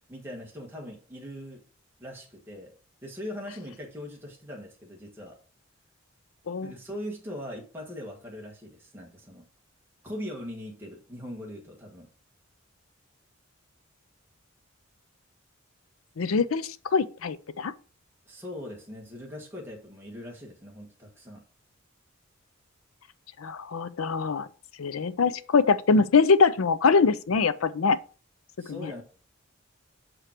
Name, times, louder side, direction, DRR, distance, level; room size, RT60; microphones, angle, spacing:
voice 1, 0.1-1.6 2.0-2.7 3.0-5.4 6.6-9.4 10.0-12.1 18.3-21.4 28.6-29.0, left 1 dB, 10° right, 1.4 m, -40 dB
voice 2, 16.2-17.7 23.4-24.5 24.8-28.0 28.7-28.9, left 4 dB, 85° left, 0.5 m, -23 dB
6.2 x 5.0 x 4.4 m
head